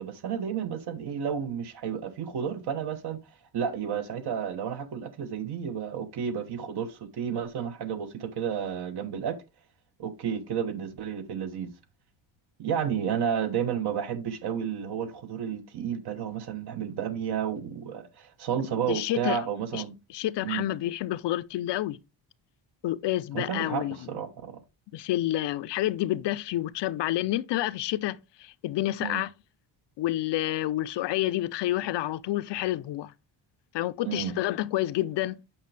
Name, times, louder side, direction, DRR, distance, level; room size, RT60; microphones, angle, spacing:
voice 1, 0.0-3.2 3.5-9.4 10.0-11.7 12.6-20.0 20.4-20.7 23.3-24.6 29.0-29.2 34.0-34.4, right 8 dB, 60° right, 1.1 m, -31 dB
voice 2, 18.9-19.4 19.7-19.8 20.1-22.0 22.8-24.0 24.9-29.3 30.0-33.1 33.7-35.4, left 14 dB, 75° left, 0.6 m, -29 dB
8.5 x 5.9 x 3.3 m
cardioid pair, 170°, 43 cm